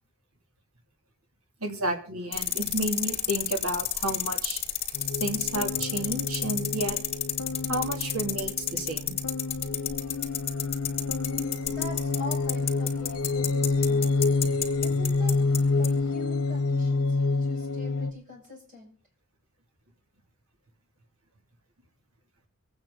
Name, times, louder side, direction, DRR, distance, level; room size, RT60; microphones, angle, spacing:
voice 1, 1.6-4.6 5.2-7.0 7.7-9.2, right 1 dB, 70° right, 4 dB, 2.8 m, -31 dB
sound 1, 2.3-15.6 15.8-15.9, left 10 dB, 25° left, 2.7 m, -29 dB
sound 2, 4.9-18.1, left 3 dB, 90° left, 1.2 m, -28 dB
voice 2, 11.3-14.1 14.8-15.4 15.8-19.0, left 1 dB, 35° right, -1 dB, 6.9 m, -43 dB
25.0 x 9.2 x 3.8 m, 0.40 s
head